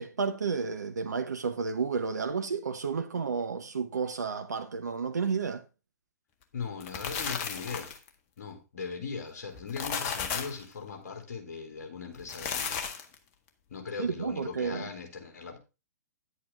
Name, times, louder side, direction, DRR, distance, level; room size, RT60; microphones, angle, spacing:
voice 1, 0.0-5.6 14.0-14.9, right 5 dB, 70° right, 0.9 m, -31 dB
voice 2, 6.5-7.9 8.4-12.8 13.7-15.6, left 5 dB, 60° left, 3.4 m, -39 dB
sound 1, 6.6-8.1 9.5-10.6 12.1-13.2, left 6 dB, 35° left, 1.7 m, -34 dB
10.5 x 8.3 x 3.7 m
figure-of-eight pair, 115°, 9 cm